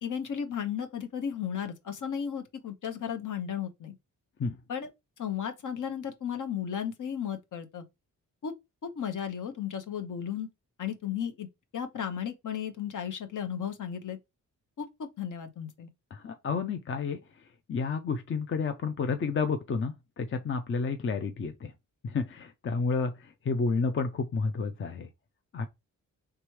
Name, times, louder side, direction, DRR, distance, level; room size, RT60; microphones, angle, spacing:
voice 1, 0.0-4.0 4.7-4.9 5.2-7.8 8.4-8.5 8.8-10.5 10.8-11.5 11.7-14.2 14.8-15.9, left 8 dB, 65° left, 0.9 m, -34 dB
voice 2, 16.1-17.2 17.7-21.7 22.0-25.1 25.5-25.7, left 4 dB, 40° left, 0.5 m, -30 dB
4.8 x 3.4 x 3.1 m
wide cardioid pair, 140°, 33 cm